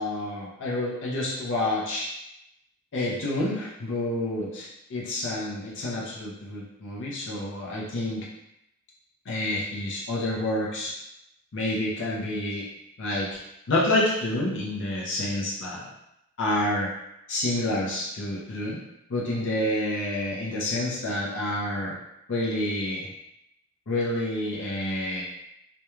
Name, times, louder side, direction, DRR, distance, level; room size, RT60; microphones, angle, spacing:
voice 1, 0.0-2.1 2.9-8.3 9.3-10.9 11.5-12.6 13.0-13.4 13.7-15.8 16.4-16.9 17.3-18.8 19.1-22.0 22.3-23.0 23.9-25.2, left 1 dB, 55° left, -4 dB, 0.5 m, -28 dB
2.3 x 2.1 x 3.0 m, 0.83 s
head